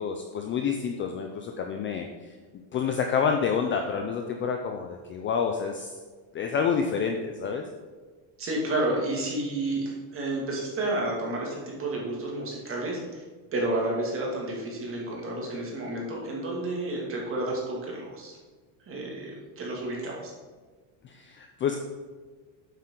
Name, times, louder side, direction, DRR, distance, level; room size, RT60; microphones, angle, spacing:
voice 1, 0.0-2.3 2.7-5.9 6.3-7.6 21.0-21.8, left 6 dB, 25° left, 4 dB, 0.4 m, -28 dB
voice 2, 8.4-13.2 13.5-18.4 18.9-20.3, right 2 dB, 30° right, -3 dB, 2.4 m, -31 dB
8.8 x 8.1 x 3.8 m, 1.4 s
cardioid pair, 170°, 46 cm